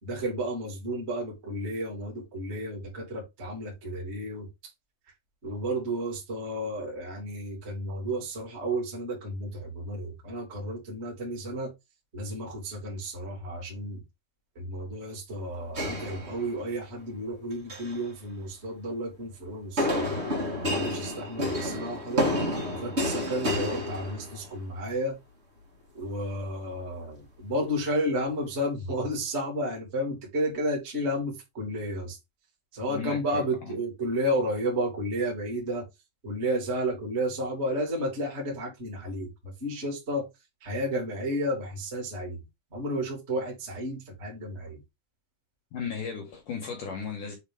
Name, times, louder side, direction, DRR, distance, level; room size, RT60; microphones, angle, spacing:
voice 1, 0.0-4.5 5.4-11.7 12.1-14.0 14.5-20.1 20.6-22.3 22.7-25.2 25.9-32.2 32.7-35.8 36.2-40.3 40.6-42.4 42.7-44.8, equal, 20° right, 2.2 m, -32 dB
sound 1, 15.7-16.8 17.5-18.0 19.8-24.6, left 1 dB, 85° right, 0.5 m, -30 dB
voice 2, 32.9-33.8 45.7-47.4, left 6 dB, 65° left, 2.2 m, -36 dB
7.3 x 4.0 x 3.7 m
omnidirectional pair, 5.0 m